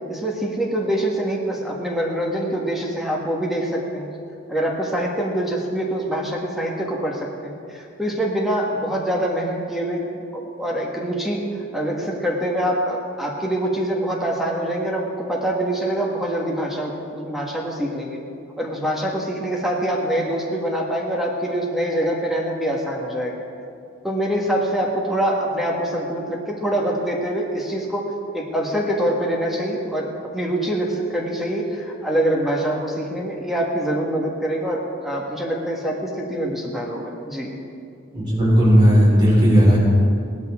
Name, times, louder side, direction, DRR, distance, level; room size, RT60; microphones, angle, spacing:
voice 1, 0.1-4.1 4.5-11.4 11.7-18.2 18.6-23.3 24.0-28.0 28.3-30.1 30.3-37.5, right 1 dB, ahead, -2 dB, 1.5 m, -24 dB
voice 2, 38.1-39.8, equal, 25° right, -7 dB, 4.1 m, -14 dB
18.0 x 13.5 x 3.6 m, 2.4 s
head